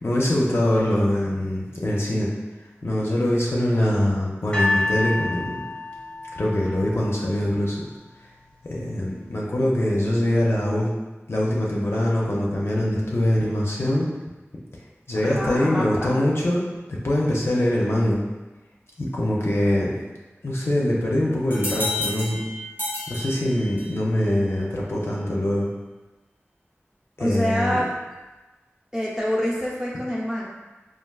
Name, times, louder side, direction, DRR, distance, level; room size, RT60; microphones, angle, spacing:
voice 1, 0.0-2.3 2.8-5.6 6.3-7.8 8.6-10.9 11.3-14.1 15.1-16.6 16.9-18.2 19.0-20.0 20.4-22.4 23.1-25.7 27.2-27.8, left 1 dB, 60° left, -4 dB, 0.5 m, -23 dB
sound 1, 4.5-7.7 8.5-8.6, left 2 dB, 20° left, 0.8 m, -28 dB
voice 2, 15.2-16.1 27.2-27.9 28.9-30.4, equal, 10° right, -6 dB, 0.8 m, -26 dB
sound 2, 21.5-24.1, left 2 dB, 45° right, 0.8 m, -31 dB
3.4 x 2.4 x 2.3 m, 1.2 s
wide cardioid pair, 50°, 5 cm